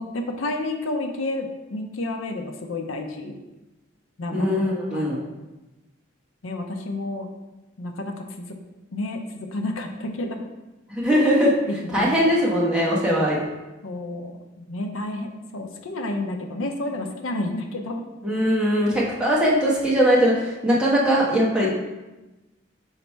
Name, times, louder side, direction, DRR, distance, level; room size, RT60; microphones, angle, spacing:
voice 1, 0.0-3.4 4.2-4.7 4.9-5.3 6.4-7.3 7.8-8.5 8.9-10.5 11.1-11.2 11.7-12.1 13.8-18.0 21.6-21.7, left 2 dB, 85° left, 4 dB, 0.6 m, -30 dB
voice 2, 4.3-5.2 10.9-11.5 11.9-13.4 18.2-21.7, equal, 5° right, -6 dB, 1.2 m, -20 dB
5.7 x 4.0 x 4.5 m, 1.1 s
head